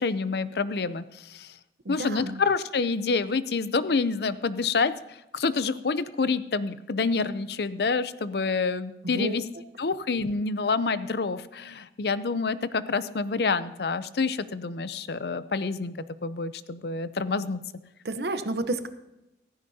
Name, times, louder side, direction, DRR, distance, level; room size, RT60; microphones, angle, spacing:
voice 1, 0.0-1.5 1.9-9.4 9.8-15.9 16.2-17.6, left 4 dB, 70° left, 14 dB, 0.6 m, -27 dB
voice 2, 1.8-2.4 9.0-9.4 18.0-18.9, right 2 dB, 70° right, 10 dB, 0.9 m, -30 dB
15.5 x 14.5 x 2.8 m, 0.93 s
head